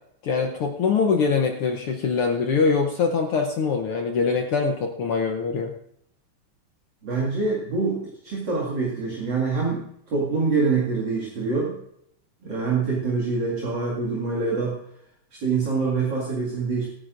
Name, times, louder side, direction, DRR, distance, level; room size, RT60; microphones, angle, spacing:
voice 1, 0.2-5.7, left 5 dB, 70° left, 2 dB, 1.3 m, -23 dB
voice 2, 7.0-8.0 8.2-11.7 12.4-14.8 15.3-16.9, right 4 dB, 40° right, -4 dB, 2.5 m, -25 dB
25.0 x 10.0 x 2.6 m, 0.74 s
omnidirectional pair, 3.6 m